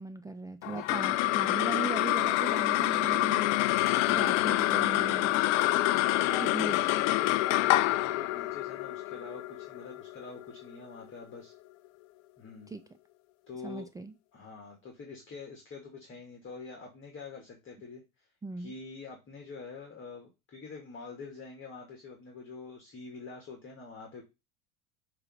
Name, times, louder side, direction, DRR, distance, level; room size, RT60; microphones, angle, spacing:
voice 1, 0.0-3.5 4.1-5.4 6.4-6.8 12.7-12.8 13.6-14.1 18.4-18.7, right 4 dB, 10° right, 0.4 m, -39 dB
sound 1, 0.6-11.2, left 16 dB, 65° left, 0.5 m, -27 dB
voice 2, 5.8-11.5 12.4-12.7 13.5-13.9 14.3-18.3 18.6-24.2, left 4 dB, 30° left, 2.0 m, -45 dB
6.7 x 3.0 x 5.6 m
hypercardioid pair, 80°, 41 cm